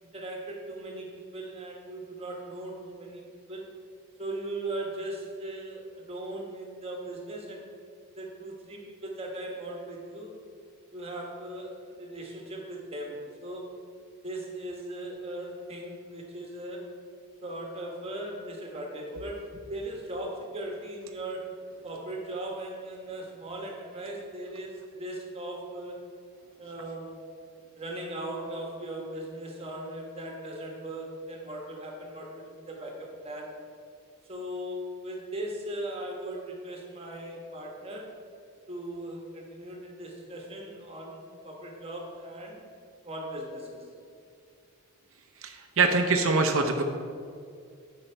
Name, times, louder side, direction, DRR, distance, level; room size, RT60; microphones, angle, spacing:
voice 1, 0.0-3.2 3.5-3.7 4.2-7.7 8.2-10.4 10.9-13.7 14.2-16.9 17.4-21.5 21.8-26.0 26.6-27.2 27.8-33.5 34.3-38.1 38.7-42.6 43.0-43.9, right 1 dB, 25° right, 0 dB, 1.3 m, -38 dB
voice 2, 45.4-46.8, right 3 dB, 65° right, 5 dB, 0.7 m, -24 dB
9.7 x 5.8 x 4.5 m, 2.3 s
head